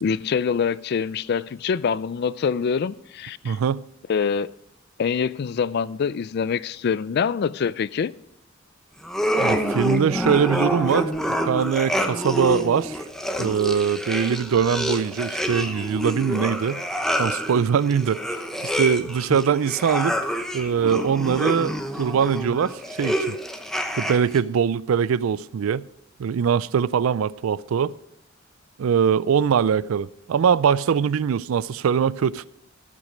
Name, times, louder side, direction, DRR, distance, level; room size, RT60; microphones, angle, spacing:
voice 1, 0.0-3.6 4.1-4.5 5.0-8.1, left 6 dB, 55° left, 0.3 m, -25 dB
voice 2, 3.4-3.8 9.4-11.1 11.5-13.0 13.4-16.8 17.2-18.2 18.8-20.1 20.5-23.4 24.0-25.8 26.2-27.9 28.8-32.5, right 7 dB, 90° right, 0.4 m, -22 dB
sound 1, 9.0-24.4, equal, ahead, 0.8 m, -27 dB
12.5 x 8.3 x 5.0 m
head